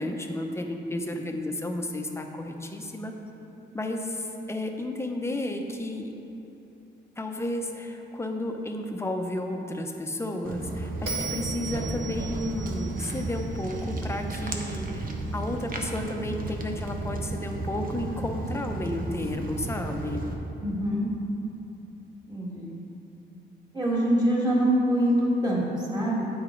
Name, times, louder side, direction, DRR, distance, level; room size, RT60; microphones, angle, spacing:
voice 1, 0.0-3.1 3.7-6.1 7.2-15.0 15.3-20.2, left 1 dB, 15° left, 3 dB, 0.7 m, -32 dB
Walk footsteps, 10.4-20.3, right 2 dB, 50° right, 0.8 m, -33 dB
Bell, 11.1-14.3, right 5 dB, 80° right, 1.5 m, -38 dB
voice 2, 20.6-21.1 22.3-22.8 23.7-26.3, right 1 dB, 20° right, -5 dB, 1.9 m, -24 dB
9.4 x 6.0 x 4.5 m, 3.0 s
cardioid pair, 130°, 19 cm